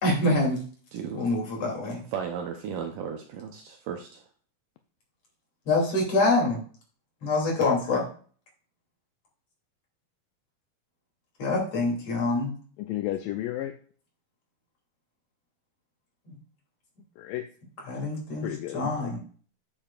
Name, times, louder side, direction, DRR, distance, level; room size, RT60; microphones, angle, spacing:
voice 1, 0.0-0.6 1.1-2.0 5.7-6.6 7.2-8.0 11.4-12.5 17.9-19.2, left 2 dB, 45° left, -2 dB, 3.7 m, -25 dB
voice 2, 0.9-1.4 2.1-4.2, right 7 dB, 75° right, 4 dB, 2.2 m, -35 dB
voice 3, 12.8-13.7 17.2-17.4 18.4-19.2, left 14 dB, 80° left, 7 dB, 2.1 m, -32 dB
8.8 x 7.6 x 2.4 m, 0.43 s
omnidirectional pair, 4.2 m